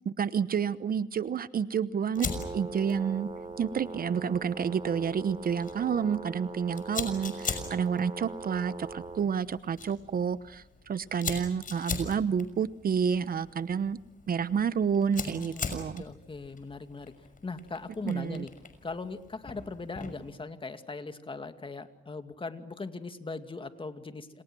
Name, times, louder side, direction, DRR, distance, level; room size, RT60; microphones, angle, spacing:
voice 1, 0.0-2.3 2.5-3.3 3.6-14.0 14.3-16.0 18.0-18.4, right 7 dB, 45° right, 15 dB, 1.0 m, -29 dB
Fire, 2.1-20.3, left 5 dB, 45° left, 6.1 m, -42 dB
Brass instrument, 2.1-9.3, right 3 dB, 25° right, 6.6 m, -41 dB
voice 2, 15.2-18.5 18.8-24.4, left 3 dB, 25° left, 8 dB, 2.4 m, -40 dB
29.5 x 27.5 x 6.2 m, 0.88 s
cardioid pair, 90°, 20 cm